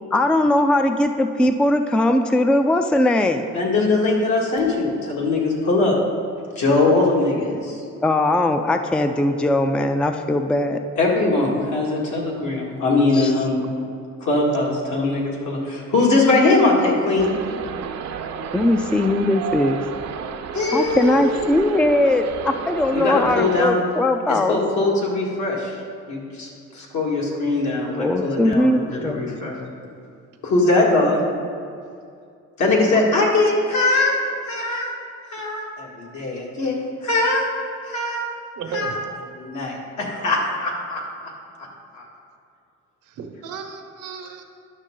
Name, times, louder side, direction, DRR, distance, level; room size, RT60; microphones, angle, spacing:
voice 1, 0.1-3.5 8.0-10.8 13.1-13.5 18.5-19.8 20.7-24.6 27.9-29.3, left 1 dB, 5° left, 7 dB, 0.4 m, -20 dB
voice 2, 3.5-6.0 6.6-7.8 11.0-13.6 14.2-17.4 20.5-21.4 22.9-23.8 24.3-25.8 26.1-29.5 30.4-31.2 32.6-34.2 34.5-34.9 35.3-36.7 37.0-37.4 37.8-38.2 38.7-39.0 39.3-41.3 41.6-41.7 41.9-42.1, left 2 dB, 70° left, -3 dB, 2.1 m, -21 dB
sound 1, 17.2-23.6, right 7 dB, 60° right, 0.6 m, -32 dB
voice 3, 38.6-39.0 43.0-44.4, right 7 dB, 85° right, 4 dB, 1.1 m, -34 dB
10.5 x 6.3 x 3.8 m, 2.3 s
cardioid pair, 90°, 30 cm